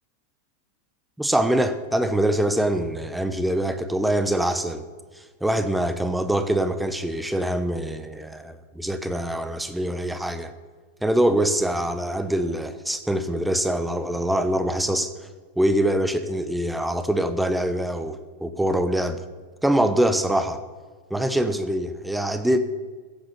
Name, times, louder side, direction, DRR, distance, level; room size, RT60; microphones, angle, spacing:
voice 1, 1.2-4.8 5.1-10.5 11.0-15.3 15.6-19.2 19.6-20.6 21.1-22.6, right 1 dB, 5° right, 10 dB, 1.0 m, -24 dB
15.5 x 7.8 x 7.2 m, 1.4 s
figure-of-eight pair, 90°, 0 cm